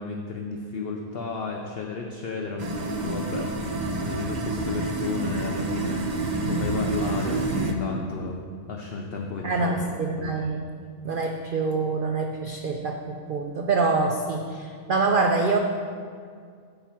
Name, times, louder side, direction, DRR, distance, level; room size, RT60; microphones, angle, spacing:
voice 1, 0.0-8.4 8.7-9.9 10.2-10.4, left 3 dB, 55° left, 1 dB, 0.7 m, -33 dB
sound 1, 2.6-7.7, right 2 dB, 45° right, 0.6 m, -28 dB
voice 2, 9.4-10.7 11.0-15.6, right 3 dB, 85° right, 3 dB, 0.4 m, -25 dB
8.9 x 4.3 x 7.4 m, 2.1 s
omnidirectional pair, 1.6 m